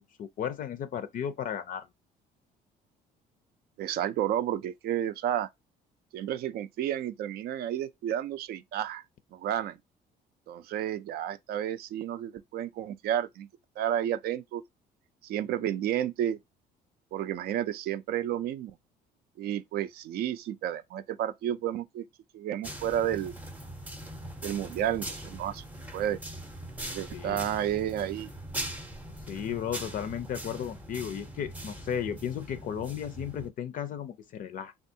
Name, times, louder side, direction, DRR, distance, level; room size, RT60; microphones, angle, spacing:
voice 1, 0.0-1.9 27.1-27.5 29.2-34.7, left 9 dB, 55° left, 0.4 m, -35 dB
voice 2, 3.8-5.5 6.1-9.0 9.3-9.8 10.5-13.5 13.8-14.6 15.2-16.4 17.1-18.7 19.4-22.0 22.3-23.3 24.4-25.6 25.9-26.2 26.8-28.3, right 11 dB, 65° right, 0.4 m, -31 dB
sound 1, 22.6-33.5, right 1 dB, 10° right, 0.6 m, -41 dB
3.4 x 2.3 x 2.7 m
cardioid pair, 110°, 17 cm